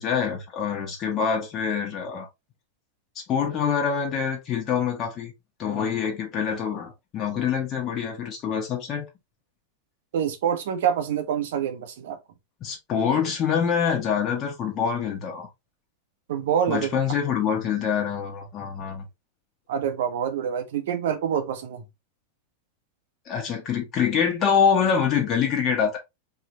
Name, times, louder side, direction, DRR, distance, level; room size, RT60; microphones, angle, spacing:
voice 1, 0.0-2.3 3.1-5.3 5.6-9.0 12.6-15.5 16.7-19.0 23.3-26.0, left 7 dB, 30° left, 1.4 m, -25 dB
voice 2, 10.1-12.2 16.3-17.0 19.7-21.9, right 8 dB, 55° right, 0.9 m, -26 dB
4.6 x 3.1 x 3.0 m
figure-of-eight pair, 90°, 0 cm